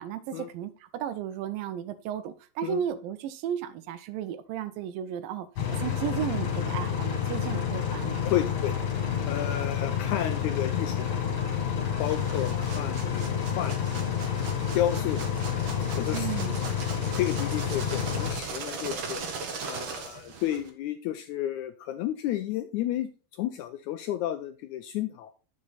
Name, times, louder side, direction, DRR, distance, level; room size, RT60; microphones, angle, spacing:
voice 1, 0.0-5.5 5.7-8.3 16.1-16.6, right 9 dB, 85° right, 2.5 m, -34 dB
sound 1, 5.6-18.3, left 8 dB, 60° left, 3.3 m, -29 dB
voice 2, 8.2-8.8 9.3-11.5 12.0-14.2 14.7-15.6 16.0-16.3 17.2-19.2 19.7-23.1 23.4-25.3, left 12 dB, 85° left, 1.7 m, -32 dB
sound 2, 12.0-20.7, right 4 dB, 50° right, 1.6 m, -39 dB
9.7 x 6.6 x 4.0 m
omnidirectional pair, 4.0 m